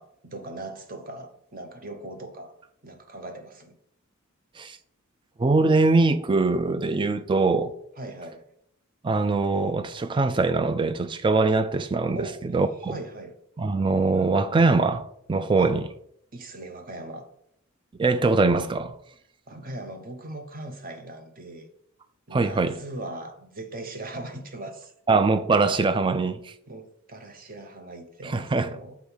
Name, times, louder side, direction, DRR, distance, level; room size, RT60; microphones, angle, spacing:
voice 1, 0.0-2.5 2.8-3.8 8.0-8.4 12.1-13.3 15.6-15.8 16.3-17.3 19.5-21.7 22.3-24.9 26.7-28.9, right 2 dB, 40° right, 0.8 m, -39 dB
voice 2, 5.4-7.7 9.0-12.9 13.6-15.9 18.0-18.9 22.3-22.8 25.1-26.5 28.2-28.8, right 3 dB, 20° right, 0.3 m, -22 dB
6.4 x 3.5 x 5.5 m
head